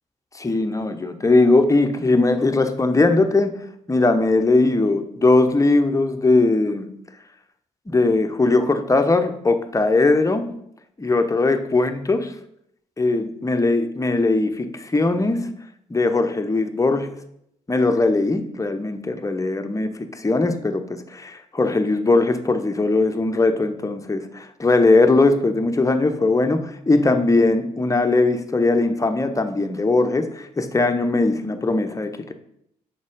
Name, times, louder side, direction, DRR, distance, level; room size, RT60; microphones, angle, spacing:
voice 1, 0.3-3.6 3.9-6.9 7.9-10.5 11.0-12.3 13.0-15.5 15.9-17.1 17.7-32.3, left 2 dB, 20° left, 7 dB, 0.8 m, -20 dB
6.4 x 4.7 x 3.6 m, 0.74 s
hypercardioid pair, 40°, 17 cm